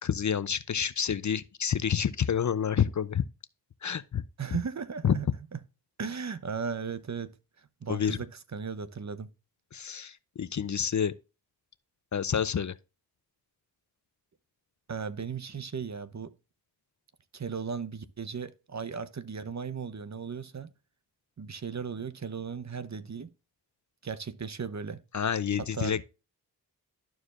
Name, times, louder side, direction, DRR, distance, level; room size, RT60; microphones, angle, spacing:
voice 1, 0.0-3.2 3.8-4.2 5.0-5.1 7.9-8.2 9.7-11.1 12.1-12.7 25.1-26.1, left 8 dB, 45° left, 0.6 m, -28 dB
voice 2, 4.4-5.6 6.0-9.3 14.9-16.3 17.3-20.7 21.4-23.3 24.0-25.0 25.6-26.0, right 6 dB, 40° right, 0.9 m, -36 dB
13.0 x 4.7 x 2.5 m
cardioid pair, 40°, 42 cm